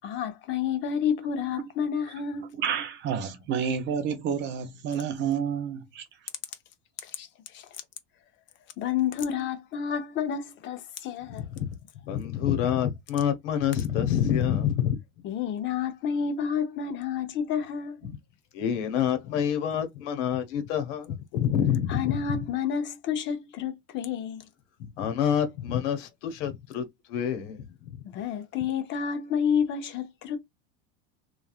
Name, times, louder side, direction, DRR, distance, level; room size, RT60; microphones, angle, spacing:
voice 1, 0.0-2.6 7.0-7.3 7.5-7.7 8.8-11.4 15.2-18.1 21.9-24.5 28.1-30.4, left 7 dB, 35° left, 0.6 m, -30 dB
voice 2, 2.6-6.0, right 7 dB, 30° right, 0.5 m, -29 dB
voice 3, 11.4-11.7 12.0-15.0 18.0-18.2 18.5-22.5 24.8-28.0, left 9 dB, 75° left, 1.0 m, -27 dB
3.1 x 2.4 x 2.3 m
supercardioid pair, 150°, 35 cm